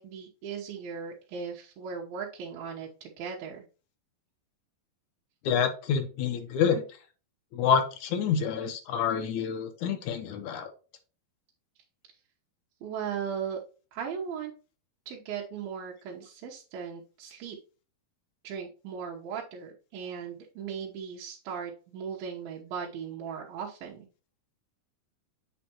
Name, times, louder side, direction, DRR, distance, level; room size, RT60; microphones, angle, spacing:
voice 1, 0.0-3.6 12.8-13.6 13.9-14.5 15.1-17.6 18.4-24.0, right 7 dB, 85° right, -3 dB, 3.0 m, -37 dB
voice 2, 5.5-6.8 7.5-10.7, left 7 dB, 70° left, 6 dB, 2.1 m, -27 dB
8.0 x 5.0 x 2.9 m, 0.34 s
omnidirectional pair, 4.2 m